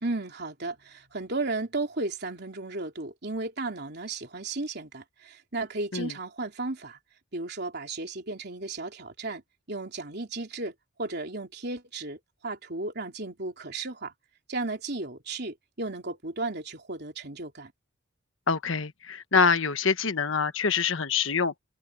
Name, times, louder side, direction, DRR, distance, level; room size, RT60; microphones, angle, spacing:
voice 1, 0.0-7.0 7.3-9.4 9.7-14.1 14.5-17.7, right 2 dB, 50° right, 3.6 m, -34 dB
voice 2, 18.5-21.5, left 5 dB, 70° left, 1.2 m, -25 dB
head